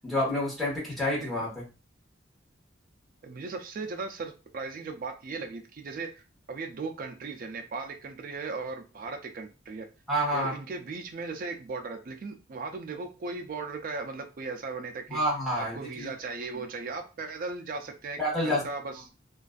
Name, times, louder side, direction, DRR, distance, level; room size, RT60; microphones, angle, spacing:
voice 1, 0.0-1.5 10.1-10.5 15.1-16.1 18.2-18.6, equal, ahead, -6 dB, 1.0 m, -28 dB
voice 2, 3.2-6.2 6.5-9.9 10.3-15.2 15.6-19.1, right 4 dB, 45° right, 6 dB, 0.3 m, -37 dB
2.4 x 2.3 x 2.4 m, 0.31 s
head